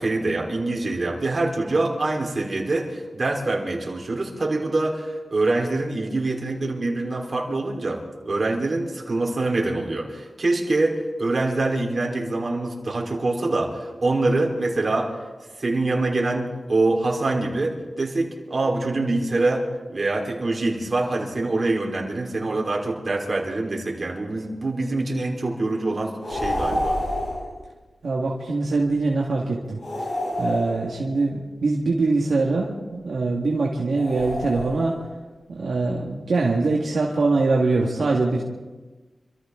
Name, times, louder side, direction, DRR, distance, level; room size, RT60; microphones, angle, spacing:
voice 1, 0.0-15.2 15.6-27.0, right 2 dB, 50° right, -1 dB, 3.8 m, -25 dB
sound 1, 26.2-27.5 29.8-31.2 33.9-35.1, left 1 dB, 65° left, 5.8 m, -28 dB
voice 2, 28.0-29.8 30.4-34.9 35.5-38.4, right 3 dB, 80° right, -2 dB, 1.8 m, -23 dB
27.0 x 14.0 x 3.8 m, 1.3 s
wide cardioid pair, 70°, 0 cm